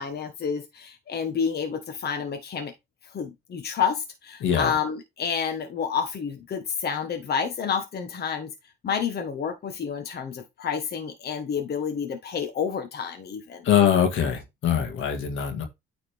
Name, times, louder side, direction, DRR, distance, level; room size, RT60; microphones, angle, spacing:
voice 1, 0.0-2.7 3.1-8.5 8.8-13.7, left 7 dB, 55° left, 1.3 m, -29 dB
voice 2, 4.4-4.7 13.6-15.6, left 8 dB, 80° left, 2.0 m, -23 dB
9.2 x 4.2 x 3.5 m
cardioid pair, 90°, 20 cm